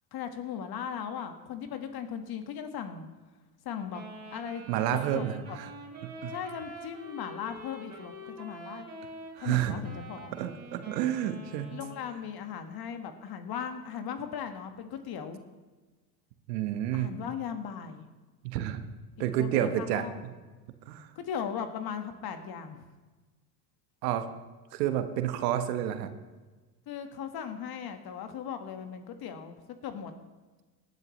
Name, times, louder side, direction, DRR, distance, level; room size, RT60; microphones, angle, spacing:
voice 1, 0.1-3.1 3.6-4.0 4.3-4.6 4.9-5.6 6.3-8.9 9.4-10.3 11.7-15.4 16.9-18.1 19.2-20.3 21.1-22.9 26.9-30.1, left 7 dB, 50° left, 7 dB, 1.6 m, -38 dB
Wind instrument woodwind instrument, 3.9-12.4, right 1 dB, 30° right, 3.8 m, -46 dB
voice 2, 4.7-5.7 6.0-6.3 9.4-9.7 10.4-11.7 16.5-17.1 18.4-18.8 19.2-20.1 20.9-21.1 24.0-24.3 24.7-26.1, right 11 dB, 75° right, 9 dB, 1.2 m, -29 dB
18.5 x 10.5 x 3.2 m, 1.3 s
hypercardioid pair, 75°, 49 cm